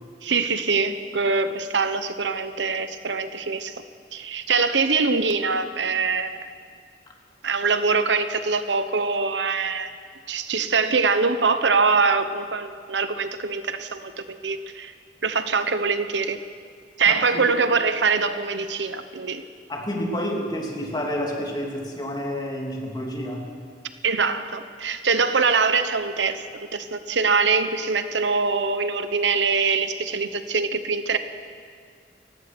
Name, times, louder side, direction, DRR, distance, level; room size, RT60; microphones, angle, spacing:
voice 1, 0.2-3.7 4.1-6.4 7.4-9.9 10.3-14.9 15.2-16.4 17.0-19.4 24.0-31.2, right 4 dB, 85° right, 10 dB, 1.1 m, -23 dB
voice 2, 17.1-17.5 19.7-23.5, equal, 25° left, 0 dB, 3.1 m, -29 dB
29.5 x 16.5 x 6.2 m, 2.1 s
head